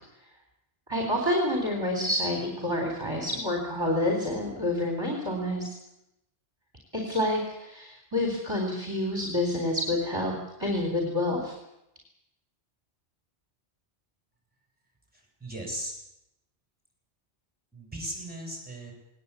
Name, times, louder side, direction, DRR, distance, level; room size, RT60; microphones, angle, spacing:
voice 1, 0.9-5.7 6.9-11.5, left 1 dB, 25° right, 1 dB, 4.0 m, -28 dB
voice 2, 15.1-15.9 17.7-18.9, right 1 dB, 10° right, 0 dB, 7.6 m, -37 dB
20.0 x 19.5 x 8.4 m, 0.87 s
omnidirectional pair, 1.2 m